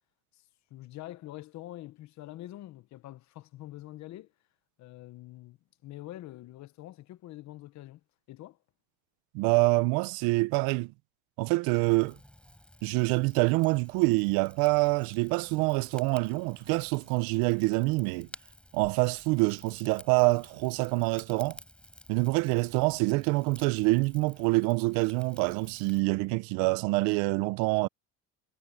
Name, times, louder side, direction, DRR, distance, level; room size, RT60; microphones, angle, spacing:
voice 1, 0.7-4.3 4.8-5.6 5.8-8.0 8.3-8.6, left 15 dB, 55° left, 1.0 m, -45 dB
voice 2, 9.3-10.9 11.4-12.2 12.8-18.3 18.7-21.6 22.1-27.9, right 25 dB, 90° right, 0.7 m, -26 dB
Rain / Fire, 11.7-26.0, left 1 dB, 5° left, 7.4 m, -53 dB
cardioid pair, 140°, 34 cm